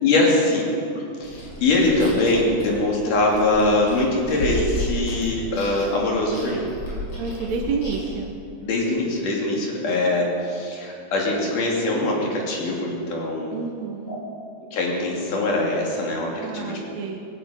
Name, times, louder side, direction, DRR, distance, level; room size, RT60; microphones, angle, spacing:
voice 1, 0.0-6.7 8.6-13.6 14.1-14.2 14.7-16.8, left 2 dB, 75° left, -2 dB, 4.2 m, -22 dB
Chewing mastication, 1.2-8.2, equal, 40° left, 6.1 m, -33 dB
voice 2, 7.2-8.4 13.5-14.2 16.4-17.2, right 5 dB, 70° right, 2 dB, 2.1 m, -29 dB
18.0 x 16.0 x 5.1 m, 2.4 s
omnidirectional pair, 3.7 m